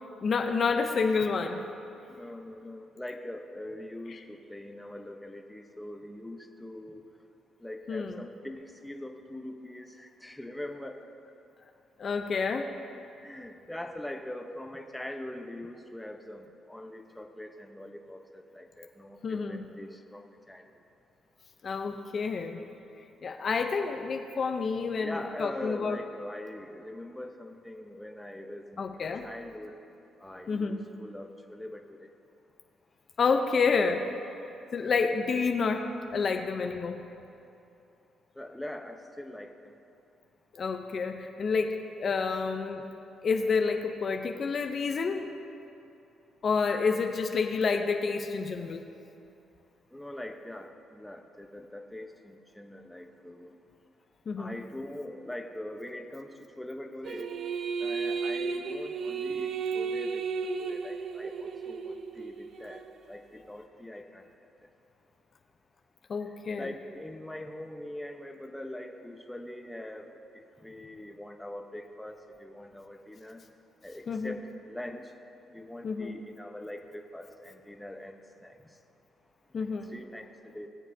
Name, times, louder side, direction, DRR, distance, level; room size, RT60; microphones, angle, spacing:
voice 1, 0.2-1.7 7.9-8.2 12.0-12.7 19.2-19.7 21.6-22.6 23.2-26.0 28.8-29.3 30.5-30.9 33.2-34.1 34.7-37.0 40.5-42.9 43.2-45.3 46.4-48.9 54.3-54.5 66.1-66.7 74.1-74.4 75.8-76.1 79.5-79.9, left 5 dB, 50° left, 5 dB, 0.6 m, -29 dB
voice 2, 2.1-7.0 7.6-11.0 13.2-20.7 25.0-29.8 30.2-32.1 34.8-34.9 38.3-39.7 42.3-42.4 49.9-53.6 54.4-57.3 57.8-60.2 60.6-62.8 63.1-64.3 64.6-64.7 66.2-73.4 73.8-75.1 75.5-78.8 79.6-80.7, left 1 dB, 5° left, 4 dB, 0.8 m, -42 dB
sound 1, 57.0-62.9, right 5 dB, 65° right, 0.6 m, -34 dB
19.5 x 7.4 x 2.7 m, 2.8 s
cardioid pair, 90°, 0 cm